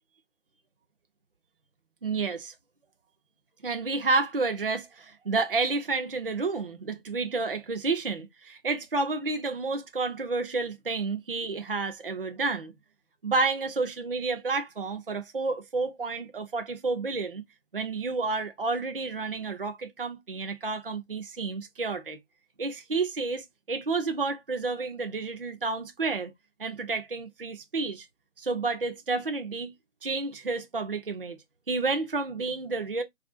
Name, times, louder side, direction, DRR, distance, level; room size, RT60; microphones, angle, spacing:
voice 1, 2.0-2.5 3.6-12.7 13.2-17.4 17.7-22.2 22.6-26.3 26.6-28.1 28.4-29.7 30.0-31.4 31.7-33.0, right 3 dB, 50° right, 0.4 m, -30 dB
4.5 x 2.4 x 2.4 m
figure-of-eight pair, 160°, 37 cm